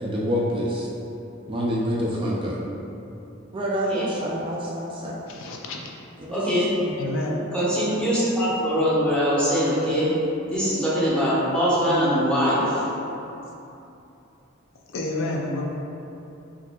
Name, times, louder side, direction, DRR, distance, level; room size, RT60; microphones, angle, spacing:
voice 1, 0.0-0.9 1.5-2.6 3.5-5.2 6.2-6.5, equal, 25° right, -4 dB, 0.3 m, -27 dB
voice 2, 3.7-4.1 6.3-6.7 7.5-10.2 10.5-12.8, equal, 5° left, -11 dB, 0.9 m, -22 dB
voice 3, 5.3-5.8 6.9-7.4 14.9-15.7, left 2 dB, 70° left, -1 dB, 0.4 m, -29 dB
4.6 x 2.7 x 2.2 m, 2.9 s
head